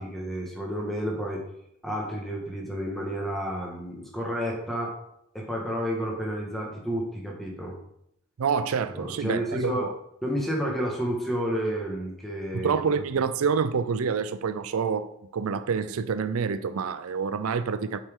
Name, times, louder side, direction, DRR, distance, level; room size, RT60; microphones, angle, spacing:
voice 1, 0.0-1.4 1.8-4.9 5.3-7.7 8.9-9.9 10.2-12.7, equal, ahead, 1.6 m, -30 dB
voice 2, 8.4-9.9 12.5-18.0, right 6 dB, 85° right, 0.4 m, -27 dB
8.6 x 5.7 x 3.8 m
head